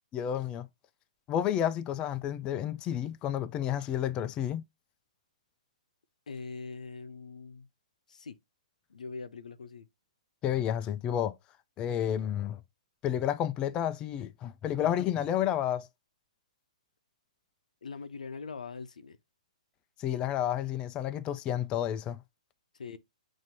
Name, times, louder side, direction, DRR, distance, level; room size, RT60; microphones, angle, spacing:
voice 1, 0.1-0.7 1.3-4.6 10.4-11.3 11.8-12.6 13.0-15.9 20.0-22.2, left 10 dB, 25° left, 0.3 m, -30 dB
voice 2, 6.3-7.7 8.1-8.4 8.9-9.9 17.8-19.2 22.7-23.0, left 4 dB, 80° left, 0.6 m, -42 dB
5.9 x 2.7 x 2.7 m
hypercardioid pair, 130°, 4 cm